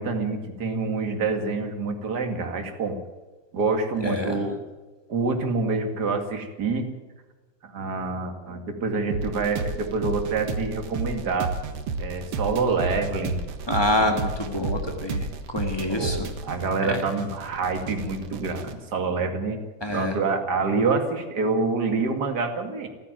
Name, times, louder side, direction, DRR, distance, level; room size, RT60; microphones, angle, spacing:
voice 1, 0.0-3.0 3.5-4.6 5.1-6.9 7.6-11.5 12.0-13.4 14.5-15.0 15.9-19.6 19.9-22.9, right 4 dB, 35° right, 5 dB, 2.3 m, -27 dB
voice 2, 4.0-4.4 13.7-15.3 15.5-16.2 16.9-17.0 19.8-20.1, left 1 dB, 40° left, 3 dB, 0.3 m, -26 dB
sound 1, 9.1-18.7, right 4 dB, 55° right, 2.2 m, -32 dB
28.5 x 9.9 x 9.2 m, 1.2 s
omnidirectional pair, 3.7 m